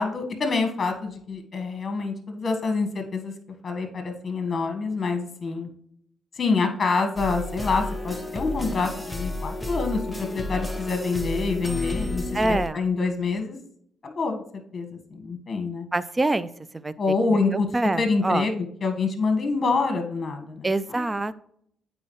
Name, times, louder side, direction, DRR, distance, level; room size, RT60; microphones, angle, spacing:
voice 1, 0.0-3.3 3.6-5.7 6.4-13.6 14.0-14.4 14.7-15.9 17.0-17.7 18.0-21.1, left 4 dB, 35° left, 6 dB, 1.4 m, -26 dB
sound 1, 7.2-12.7, left 2 dB, 5° left, 0.8 m, -31 dB
voice 2, 12.3-12.8 15.9-16.5 16.8-16.9 17.3-18.5 20.6-21.4, right 2 dB, 20° right, 16 dB, 0.4 m, -25 dB
8.8 x 4.1 x 3.1 m, 0.68 s
cardioid pair, 90°, 0 cm